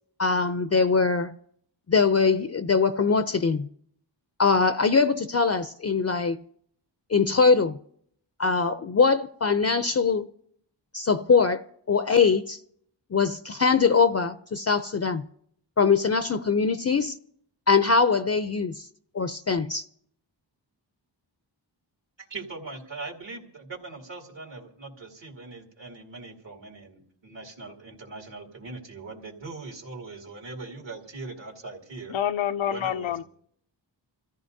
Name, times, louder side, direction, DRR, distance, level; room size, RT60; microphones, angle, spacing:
voice 1, 0.2-1.3 1.9-3.7 4.4-6.4 7.1-7.7 8.4-10.3 10.9-12.6 13.1-15.2 15.8-17.2 17.7-18.9 19.1-19.9, left 5 dB, 35° left, 0.5 m, -22 dB
voice 2, 22.2-32.2 32.6-33.2, right 3 dB, 75° right, 2.7 m, -41 dB
voice 3, 32.1-33.2, left 10 dB, 90° left, 0.6 m, -27 dB
26.5 x 14.5 x 2.7 m
wide cardioid pair, 65°, 45 cm